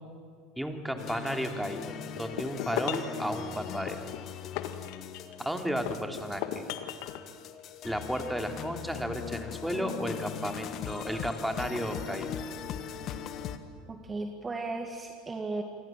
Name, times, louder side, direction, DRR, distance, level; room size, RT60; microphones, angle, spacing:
voice 1, 0.6-4.0 5.4-6.6 7.8-12.4, equal, 5° right, 5 dB, 3.1 m, -33 dB
sound 1, 1.0-13.6, left 8 dB, 50° left, 1.7 m, -40 dB
sound 2, 2.2-3.2 3.9-5.4 5.9-7.2, left 12 dB, 65° left, 1.7 m, -36 dB
voice 2, 13.9-15.6, right 3 dB, 20° right, 5 dB, 2.0 m, -35 dB
27.5 x 24.0 x 7.6 m, 2.1 s
hypercardioid pair, 80°, 0 cm